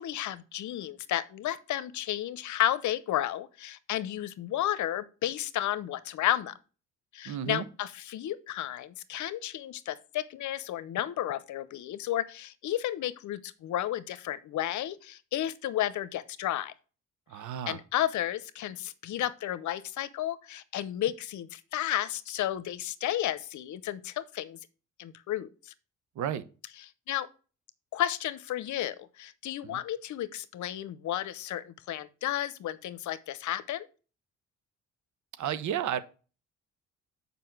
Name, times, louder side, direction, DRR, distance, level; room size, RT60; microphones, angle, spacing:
voice 1, 0.0-6.5 7.1-16.7 17.7-24.6 25.0-25.7 27.1-27.3 27.9-33.9, left 12 dB, 75° left, 0.8 m, -32 dB
voice 2, 7.2-7.7 17.3-17.8 26.2-26.4 29.6-29.8 35.4-36.0, right 10 dB, 75° right, 1.0 m, -32 dB
6.9 x 5.4 x 6.0 m
cardioid pair, 90°, 30 cm